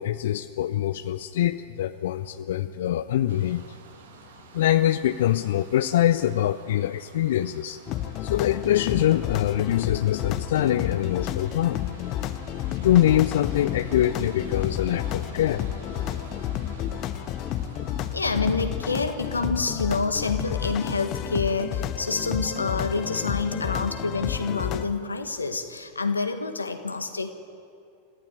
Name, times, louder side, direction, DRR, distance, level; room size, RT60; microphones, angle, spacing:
voice 1, 0.0-3.8 4.5-7.8 8.2-11.8 12.8-15.7, left 12 dB, 60° left, 12 dB, 0.5 m, -24 dB
sound 1, 3.3-19.5, right 5 dB, 60° right, 2.2 m, -49 dB
sound 2, 7.9-24.8, left 11 dB, 35° left, 1.0 m, -31 dB
voice 2, 18.1-27.3, left 3 dB, 80° left, 7 dB, 1.6 m, -27 dB
26.0 x 15.0 x 9.2 m, 2.5 s
figure-of-eight pair, 90°, 0 cm